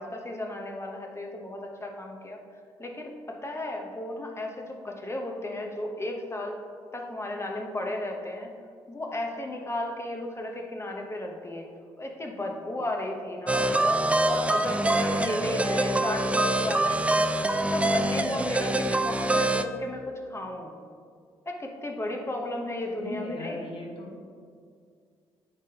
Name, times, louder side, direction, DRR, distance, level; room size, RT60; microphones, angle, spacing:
voice 1, 0.0-2.4 2.8-6.6 6.9-8.5 8.9-11.6 12.0-14.0 14.3-17.3 17.6-20.0 20.3-20.7 21.5-23.6, left 1 dB, 25° left, 2 dB, 1.0 m, -34 dB
sound 1, 13.5-19.6, right 2 dB, 10° right, 0.3 m, -25 dB
voice 2, 22.9-24.4, left 1 dB, 55° left, -1 dB, 1.5 m, -38 dB
9.6 x 3.5 x 2.9 m, 2.1 s
supercardioid pair, 55°, 11 cm